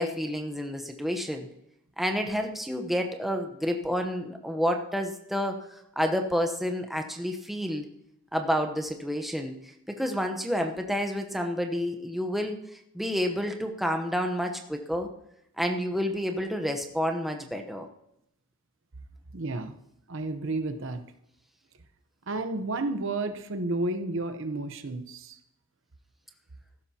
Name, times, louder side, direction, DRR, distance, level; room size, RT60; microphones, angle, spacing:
voice 1, 0.0-1.5 2.0-7.9 8.3-12.6 12.9-15.1 15.6-17.9, equal, ahead, 3 dB, 0.9 m, -29 dB
voice 2, 19.3-19.8 20.1-21.0 22.3-25.4, right 2 dB, 55° right, 8 dB, 0.9 m, -31 dB
15.0 x 12.5 x 2.9 m, 0.78 s
head